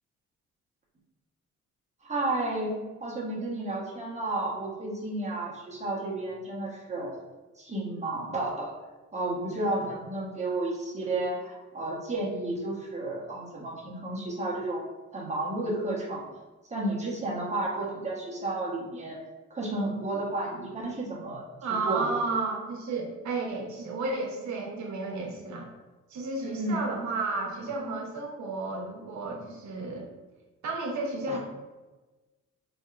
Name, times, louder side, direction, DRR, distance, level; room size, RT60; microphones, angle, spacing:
voice 1, 2.0-7.1 7.6-8.7 9.1-14.8 15.1-16.2 16.7-19.2 19.5-21.4 21.8-22.2 26.4-26.8 31.3-31.4, right 2 dB, 25° right, -4 dB, 1.1 m, -32 dB
voice 2, 21.6-25.7 26.1-30.1 30.6-31.4, right 3 dB, 70° right, 0 dB, 0.9 m, -32 dB
4.4 x 2.8 x 2.5 m, 1.2 s
cardioid pair, 90°, 30 cm